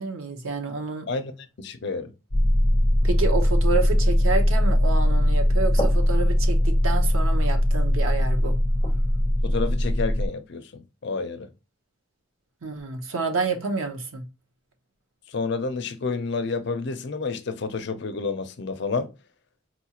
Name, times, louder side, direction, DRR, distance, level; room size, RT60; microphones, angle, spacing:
voice 1, 0.0-1.1 3.0-8.6 12.6-14.2, right 4 dB, 85° right, 0.8 m, -29 dB
voice 2, 1.6-2.1 9.4-11.5 15.3-19.1, left 4 dB, 55° left, 0.5 m, -29 dB
sound 1, 2.3-10.3, left 1 dB, 15° left, 0.7 m, -20 dB
4.2 x 2.4 x 2.8 m
head